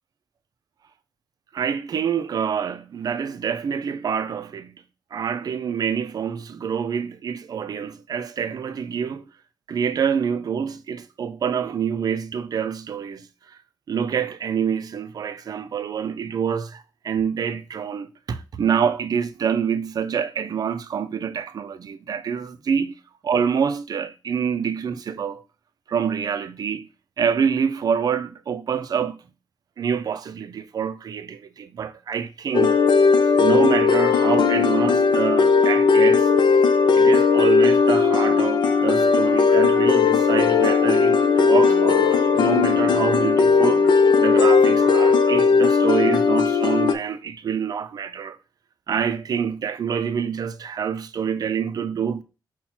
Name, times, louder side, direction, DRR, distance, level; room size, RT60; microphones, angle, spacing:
voice 1, 1.5-4.8 5.1-9.3 9.7-13.6 13.9-25.4 25.9-26.9 27.2-29.2 29.8-32.8 33.2-36.3 36.9-43.9 44.2-48.4 48.9-52.2, right 7 dB, 55° right, 0.4 m, -26 dB
sound 1, 32.5-46.9, left 5 dB, 75° left, 0.5 m, -17 dB
sound 2, 37.1-45.3, left 1 dB, ahead, 1.0 m, -38 dB
5.6 x 2.2 x 4.3 m
wide cardioid pair, 165°, 8 cm